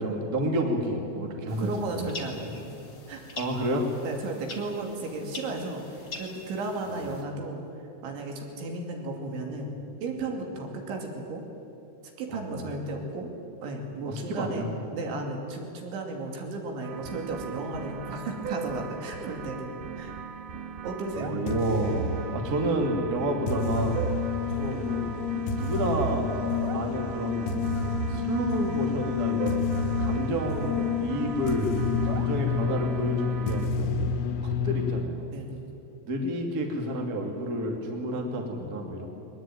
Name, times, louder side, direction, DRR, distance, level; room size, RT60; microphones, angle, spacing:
voice 1, 0.0-2.1 3.4-3.9 6.9-7.0 12.3-12.6 14.0-14.7 21.3-24.0 24.6-25.1 25.6-26.3 26.7-27.5 28.1-29.7 30.0-31.7 32.0-34.0 34.4-35.3 36.0-39.1, right 1 dB, 35° right, 2 dB, 1.6 m, -30 dB
sound 1, 1.5-7.2, left 3 dB, 45° left, 1.4 m, -44 dB
voice 2, 1.5-2.7 3.1-3.2 4.0-7.6 8.0-9.8 10.0-11.4 12.2-13.3 13.6-14.7 14.9-20.2 20.8-21.6 35.3-35.7, right 2 dB, 65° right, 2 dB, 4.8 m, -34 dB
sound 2, 16.8-33.7, right 6 dB, 80° right, 1.9 m, -39 dB
sound 3, 21.1-35.0, left 5 dB, 85° left, 4.0 m, -29 dB
21.5 x 20.0 x 9.2 m, 2.8 s
omnidirectional pair, 6.0 m